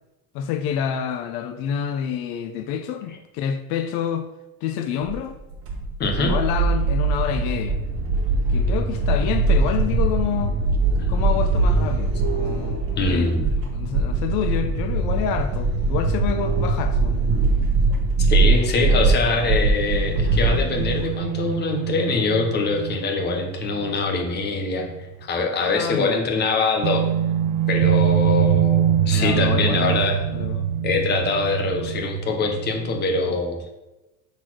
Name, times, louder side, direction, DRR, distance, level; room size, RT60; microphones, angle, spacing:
voice 1, 0.3-4.3 4.6-5.4 6.2-7.8 8.5-10.5 11.1-17.3 18.4-18.7 25.7-26.2 29.1-30.7, left 8 dB, 75° left, 9 dB, 0.7 m, -28 dB
sound 1, 5.1-21.1, right 3 dB, 35° right, 1.3 m, -21 dB
voice 2, 6.0-6.3 13.0-13.5 18.3-24.9 25.3-27.1 27.7-30.2 30.8-33.6, left 3 dB, 25° left, 3 dB, 1.0 m, -23 dB
sound 2, 19.8-25.2 25.5-25.6 26.8-33.4, right 10 dB, 85° right, 0.5 m, -24 dB
6.5 x 4.1 x 6.1 m, 1.0 s
cardioid pair, 180°, 37 cm